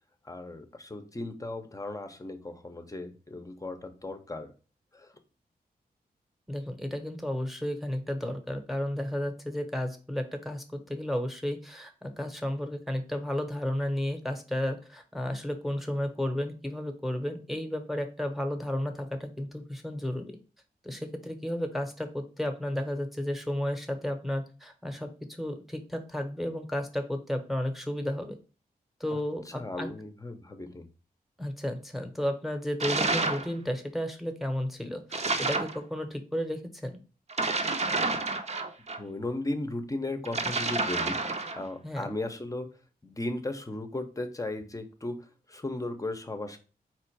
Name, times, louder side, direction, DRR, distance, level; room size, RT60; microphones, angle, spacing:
voice 1, 0.2-4.5 4.9-5.1 29.1-29.2 29.5-30.8 39.0-42.7 43.0-46.6, left 2 dB, 20° left, 7 dB, 0.8 m, -36 dB
voice 2, 6.5-20.4 20.8-28.3 29.0-29.9 31.4-36.9 41.8-42.1, left 1 dB, ahead, 6 dB, 1.0 m, -33 dB
sound 1, 32.8-33.5 35.1-35.8 37.3-39.0 40.3-41.6, right 3 dB, 40° right, 0.8 m, -29 dB
4.4 x 2.5 x 4.5 m, 0.35 s
cardioid pair, 75°, 17 cm